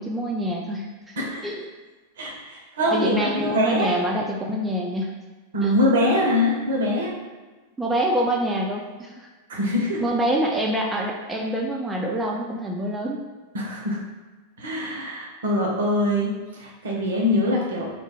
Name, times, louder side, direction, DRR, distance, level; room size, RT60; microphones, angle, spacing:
voice 1, 0.0-1.2 1.4-1.6 2.9-5.1 5.6-5.7 7.8-9.3 10.0-13.3, right 1 dB, 10° right, -1 dB, 0.3 m, -26 dB
voice 2, 2.2-4.0 5.5-7.1 9.5-10.0 13.5-14.0 14.6-17.9, left 1 dB, 60° right, -1 dB, 0.6 m, -23 dB
2.1 x 2.1 x 3.3 m, 1.3 s
figure-of-eight pair, 90°, 0 cm